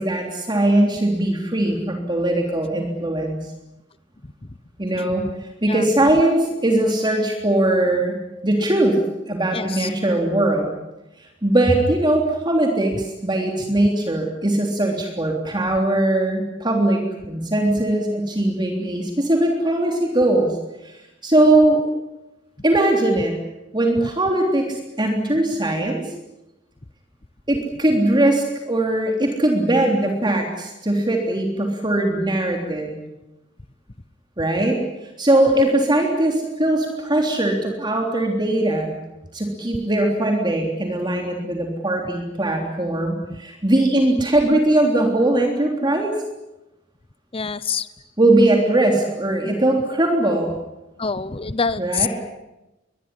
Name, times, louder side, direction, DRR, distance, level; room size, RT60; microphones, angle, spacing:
voice 1, 0.0-3.4 4.8-5.3 5.6-8.2 8.4-9.0 9.3-10.7 11.4-20.5 20.8-20.9 21.2-21.8 22.6-23.3 23.7-26.0 27.5-32.9 34.4-34.8 35.2-38.9 39.3-46.2 48.2-50.5 51.8-52.1, right 1 dB, 25° right, 2 dB, 3.4 m, -20 dB
voice 2, 9.5-9.9 47.3-47.9 51.0-52.1, left 5 dB, 30° left, 14 dB, 0.8 m, -25 dB
23.0 x 21.0 x 9.9 m, 0.97 s
head